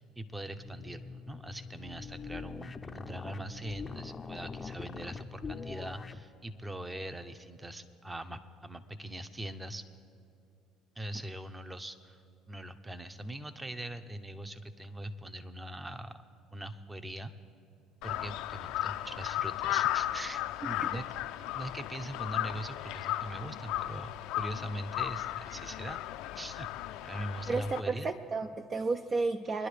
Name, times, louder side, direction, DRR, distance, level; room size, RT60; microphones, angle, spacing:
voice 1, 0.0-9.9 11.0-12.2 12.5-16.2 16.5-17.3 18.0-21.0 21.5-26.0 26.3-26.7 27.0-28.1, right 1 dB, 15° right, 11 dB, 0.8 m, -41 dB
sound 1, 0.5-6.3, left 5 dB, 25° left, 0.6 m, -43 dB
Crow, 18.0-27.8, left 14 dB, 75° left, 0.5 m, -35 dB
voice 2, 27.5-29.7, right 3 dB, 35° right, 8 dB, 0.5 m, -32 dB
25.0 x 10.5 x 3.4 m, 2.5 s
supercardioid pair, 80°, 0 cm